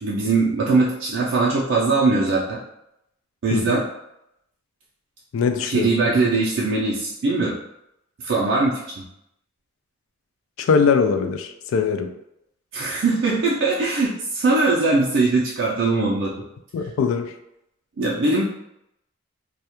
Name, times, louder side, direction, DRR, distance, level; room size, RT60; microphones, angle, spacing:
voice 1, 0.0-2.6 3.4-3.9 5.7-7.6 8.2-8.9 12.7-16.3 18.0-18.4, right 3 dB, 60° right, -5 dB, 0.4 m, -21 dB
voice 2, 3.5-3.8 5.3-6.2 10.6-12.1 16.7-17.3, left 5 dB, 75° left, 8 dB, 0.3 m, -22 dB
2.3 x 2.1 x 2.8 m, 0.81 s
head